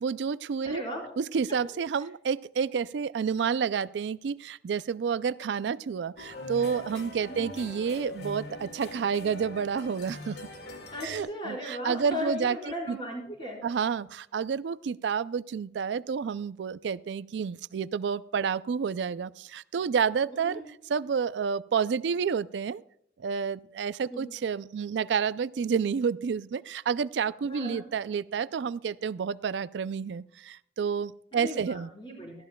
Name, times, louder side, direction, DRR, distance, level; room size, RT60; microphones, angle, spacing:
voice 1, 0.0-0.8 1.2-10.4 11.0-12.6 12.9-13.0 13.6-20.6 20.9-22.8 23.2-30.2 30.8-31.9, right 6 dB, 90° right, 17 dB, 0.4 m, -29 dB
voice 2, 0.6-1.1 7.3-7.5 10.9-13.6 20.3-20.6 24.1-24.3 27.5-27.8 31.3-32.3, left 1 dB, 30° left, -2 dB, 4.6 m, -36 dB
sound 1, 6.2-11.2, left 2 dB, 70° left, 2.0 m, -42 dB
19.0 x 13.5 x 2.2 m, 0.70 s
head